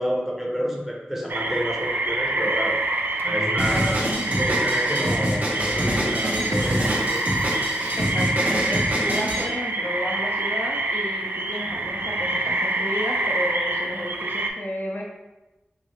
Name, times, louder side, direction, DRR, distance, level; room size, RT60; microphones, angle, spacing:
voice 1, 0.0-2.8 3.2-4.1 4.3-7.3, equal, 10° right, -3 dB, 0.8 m, -29 dB
sound 1, 1.3-14.5, right 2 dB, 70° right, 0.4 m, -26 dB
Drum kit, 3.6-9.5, equal, 50° right, 0.9 m, -26 dB
voice 2, 3.7-4.0 8.0-15.0, left 1 dB, 70° left, -2 dB, 0.6 m, -32 dB
Bell, 5.6-8.4, equal, 30° left, 0.6 m, -42 dB
3.2 x 2.8 x 3.0 m, 1.0 s
wide cardioid pair, 55°, 4 cm